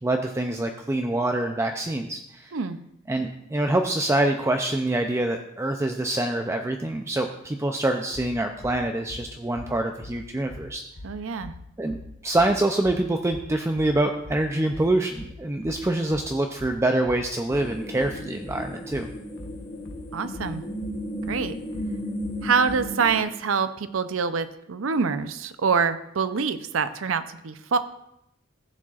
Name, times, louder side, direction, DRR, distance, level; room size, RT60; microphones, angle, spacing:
voice 1, 0.0-2.5 3.1-10.8 11.8-12.0 12.2-19.1, right 1 dB, 15° right, 4 dB, 0.4 m, -25 dB
sound 1, 8.1-22.9, left 2 dB, 65° left, 1.0 m, -42 dB
voice 2, 11.0-11.5 20.1-20.6 21.3-21.6 22.4-27.8, right 5 dB, 70° right, 12 dB, 0.5 m, -25 dB
sound 2, 17.5-23.2, equal, 35° left, 2.6 m, -34 dB
15.0 x 7.3 x 2.4 m, 0.80 s
head